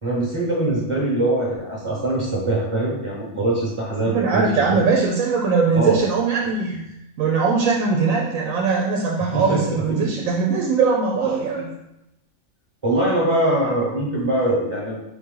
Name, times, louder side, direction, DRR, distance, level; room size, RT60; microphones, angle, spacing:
voice 1, 0.0-4.4 4.7-4.8 5.7-6.0 9.2-10.1 11.6-11.7 12.8-15.0, right 1 dB, 25° right, -5 dB, 1.0 m, -23 dB
voice 2, 4.1-6.8 7.2-11.6, right 5 dB, 85° right, -1 dB, 1.0 m, -20 dB
4.2 x 2.9 x 3.7 m, 0.86 s
omnidirectional pair, 1.4 m